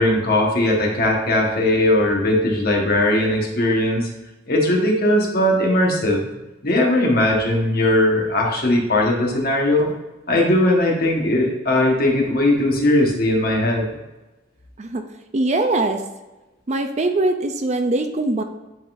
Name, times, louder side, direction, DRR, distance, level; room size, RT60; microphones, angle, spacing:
voice 1, 0.0-4.1 4.5-6.3 6.6-9.8 10.3-13.9, left 1 dB, 50° left, -1 dB, 1.4 m, -19 dB
voice 2, 15.3-16.0 16.7-18.4, right 2 dB, 35° right, 6 dB, 0.4 m, -21 dB
9.6 x 3.9 x 2.6 m, 1.1 s
head